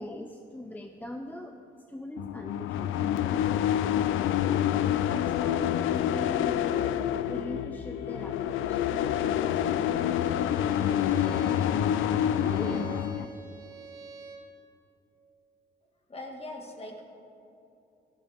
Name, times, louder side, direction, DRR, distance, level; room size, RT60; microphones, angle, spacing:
voice 1, 0.0-1.6 1.9-3.0 5.0-7.0 7.3-11.7 12.4-13.3, left 1 dB, 10° left, 5 dB, 0.7 m, -41 dB
sound 1, 2.2-13.2, left 10 dB, 85° left, 0.5 m, -27 dB
Bowed string instrument, 10.0-14.5, right 5 dB, 80° right, 1.8 m, -46 dB
voice 2, 16.1-17.0, left 1 dB, 30° left, 2 dB, 2.1 m, -41 dB
17.0 x 14.0 x 3.6 m, 2.9 s
cardioid pair, 90°, 20 cm